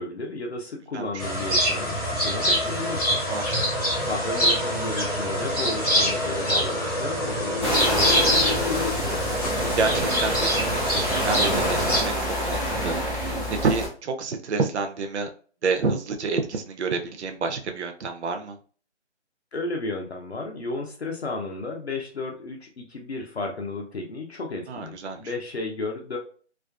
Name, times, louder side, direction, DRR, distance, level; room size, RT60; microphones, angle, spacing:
voice 1, 0.0-3.2 4.0-9.2 19.5-26.2, left 2 dB, 60° left, 0 dB, 0.6 m, -33 dB
voice 2, 0.9-1.2 3.3-3.4 9.8-12.1 12.4-13.0 13.5-15.3 15.6-18.6 24.7-25.3, right 4 dB, 65° right, 5 dB, 0.5 m, -28 dB
sound 1, 1.2-12.0, equal, 30° left, 0.8 m, -25 dB
sound 2, 4.2-8.9, left 6 dB, 90° left, 0.9 m, -34 dB
sound 3, 7.6-13.9, equal, ahead, 0.6 m, -27 dB
2.4 x 2.3 x 2.3 m, 0.41 s
figure-of-eight pair, 180°, 36 cm